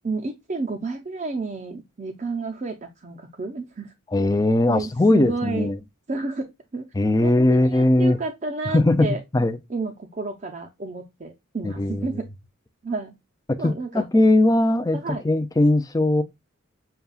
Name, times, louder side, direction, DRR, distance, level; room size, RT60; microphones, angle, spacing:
voice 1, 0.0-3.9 4.7-5.7 6.1-6.9 7.2-9.2 9.7-12.3 12.8-13.1 13.6-14.1 14.9-15.2, right 3 dB, 35° right, 0.5 m, -31 dB
voice 2, 4.1-5.8 7.0-8.2 8.7-9.1 9.3-9.6 11.6-12.1 13.6-15.0 15.2-16.2, left 1 dB, 15° left, 0.4 m, -19 dB
6.8 x 2.3 x 2.3 m
head